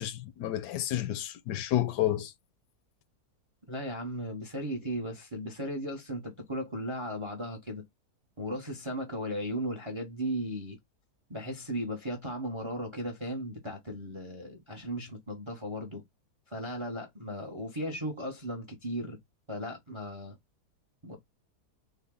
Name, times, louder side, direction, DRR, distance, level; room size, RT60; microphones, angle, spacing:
voice 1, 0.0-2.3, left 13 dB, 85° left, 1.2 m, -30 dB
voice 2, 3.7-7.8 8.4-10.8 11.3-16.0 16.5-19.2 19.5-20.4 21.0-21.2, equal, 35° right, 0.4 m, -36 dB
3.7 x 2.1 x 3.5 m
omnidirectional pair, 1.7 m